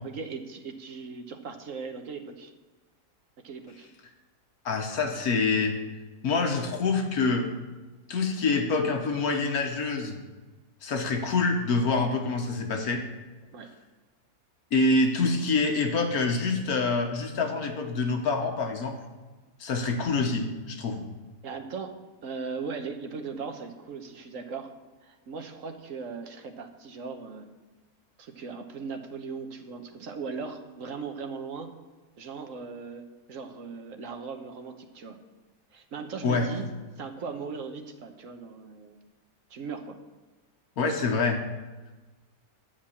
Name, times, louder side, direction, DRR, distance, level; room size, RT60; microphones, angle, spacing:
voice 1, 0.0-2.5 3.4-3.9 13.5-13.7 17.5-17.6 21.4-21.9 22.2-24.7 25.0-27.5 28.2-31.7 32.2-33.0 33.3-35.2 35.7-36.7 37.0-39.0 39.5-40.0, right 5 dB, 65° right, 5 dB, 1.4 m, -38 dB
voice 2, 4.6-5.8 6.2-7.5 8.1-10.2 10.8-13.0 14.7-18.9 19.6-21.0 36.2-36.5 40.8-41.4, left 3 dB, 85° left, 3 dB, 1.7 m, -26 dB
12.0 x 5.1 x 8.6 m, 1.2 s
omnidirectional pair, 1.5 m